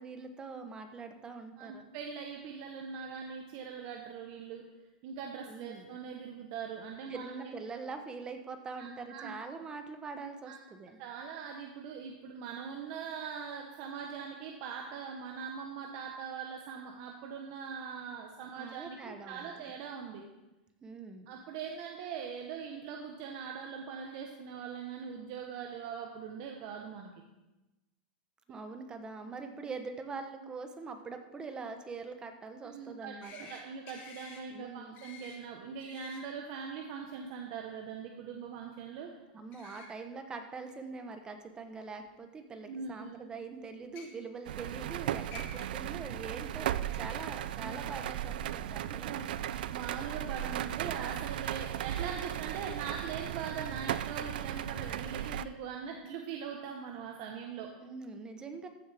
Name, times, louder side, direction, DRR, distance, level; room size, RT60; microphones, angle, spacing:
voice 1, 0.0-1.9 5.5-5.9 7.1-11.0 18.5-19.7 20.8-21.3 28.5-33.5 34.5-35.0 39.3-49.2 57.8-58.7, right 4 dB, 15° right, 7 dB, 0.9 m, -43 dB
voice 2, 1.6-4.6 5.0-7.5 8.8-9.4 10.5-10.6 11.0-20.2 21.3-27.1 28.5-28.6 32.6-39.1 39.6-39.7 42.7-43.2 47.6-47.9 48.6-48.8 49.0-57.7, right 6 dB, 50° right, 1 dB, 1.1 m, -42 dB
sound 1, 33.2-33.6 33.9-34.4 35.0-35.4 35.8-36.2 39.5-39.9 40.7-40.8 42.0-42.1 43.8-44.1 45.0-45.1 45.3-45.7, left 4 dB, 40° left, 1.7 m, -49 dB
sound 2, 44.5-55.5, right 11 dB, 75° right, 0.4 m, -36 dB
14.0 x 7.2 x 3.5 m, 1.0 s
supercardioid pair, 140°, 5 cm